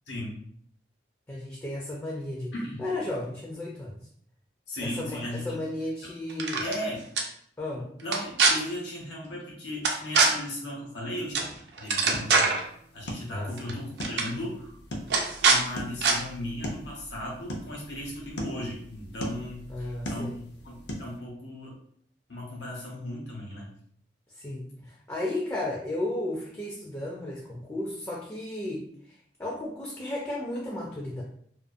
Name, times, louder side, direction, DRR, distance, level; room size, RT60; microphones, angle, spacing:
voice 1, 0.1-0.4 2.5-2.9 4.7-5.6 6.0-6.1 6.6-7.0 7.7-12.6 12.9-14.7 15.5-20.3 20.6-21.8 22.3-23.7, left 1 dB, 85° left, -3 dB, 0.9 m, -37 dB
voice 2, 1.3-2.5 2.8-4.0 4.8-6.6 7.6-7.9 13.3-13.5 19.7-20.4 24.4-28.9 29.4-31.2, left 1 dB, 15° left, -3 dB, 0.3 m, -34 dB
sound 1, 6.3-6.8 7.2-7.3 8.0-8.5 9.8-10.3 11.3-11.5 11.8-12.6 13.6-13.7 14.0-14.3 15.1-15.6 16.0-16.2, right 4 dB, 65° right, 0.5 m, -22 dB
sound 2, 12.0-21.2, equal, 70° left, 0.5 m, -40 dB
2.4 x 2.3 x 2.5 m, 0.63 s
head